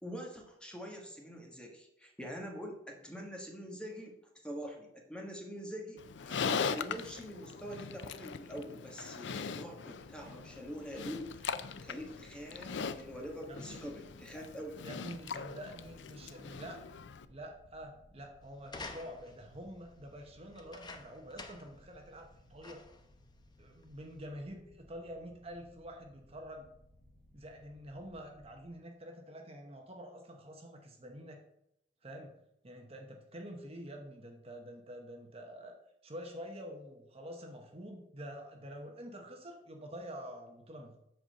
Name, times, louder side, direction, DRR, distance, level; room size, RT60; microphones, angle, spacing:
voice 1, 0.0-4.1 4.4-14.9, equal, 5° left, 1 dB, 1.3 m, -45 dB
Livestock farm animals working animals, 6.0-17.2, left 6 dB, 80° left, 0.5 m, -40 dB
sound 1, 9.9-28.7, left 1 dB, 55° right, 3.6 m, -63 dB
voice 2, 13.5-13.8 14.8-16.8 17.3-22.8 23.6-26.7 27.3-31.4 32.0-32.3 32.6-41.0, equal, 35° right, 3 dB, 0.9 m, -47 dB
sound 2, 18.6-19.4 20.5-21.8 22.2-22.3 22.6-23.1 23.8-23.9, left 3 dB, 25° left, 0.8 m, -48 dB
7.8 x 4.2 x 6.4 m, 0.80 s
head